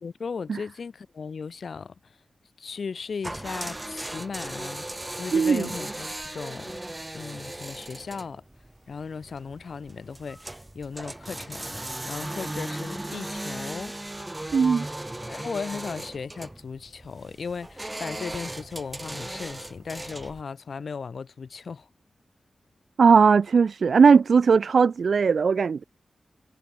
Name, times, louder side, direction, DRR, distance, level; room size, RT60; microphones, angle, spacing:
voice 1, 0.0-1.9 2.6-4.8 5.2-6.8 7.1-8.4 8.9-13.9 15.2-21.9, left 5 dB, 75° left, 1.8 m, -36 dB
sound 1, 3.2-20.4, right 1 dB, 15° right, 0.4 m, -37 dB
voice 2, 5.3-5.7 14.5-14.9 23.0-25.8, right 5 dB, 80° right, 0.4 m, -18 dB
wide cardioid pair, 90°, 0 cm